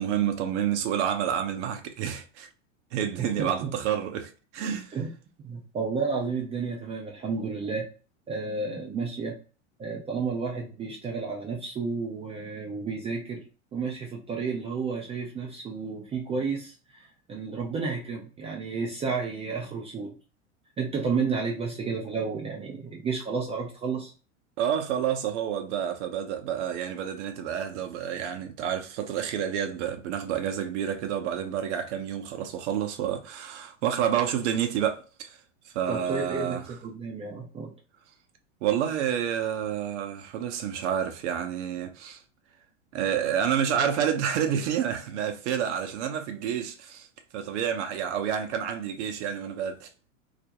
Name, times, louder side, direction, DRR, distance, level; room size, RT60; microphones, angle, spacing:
voice 1, 0.0-2.5 2.9-5.0 24.6-36.7 38.6-42.2 42.9-47.1 47.3-49.9, right 9 dB, 60° right, 0.6 m, -29 dB
voice 2, 3.2-3.7 4.9-5.1 5.4-7.9 8.3-9.4 9.8-13.4 13.7-20.2 20.8-24.1 35.9-37.7, right 4 dB, 15° right, 0.3 m, -31 dB
2.4 x 2.1 x 2.8 m
hypercardioid pair, 95°, 39 cm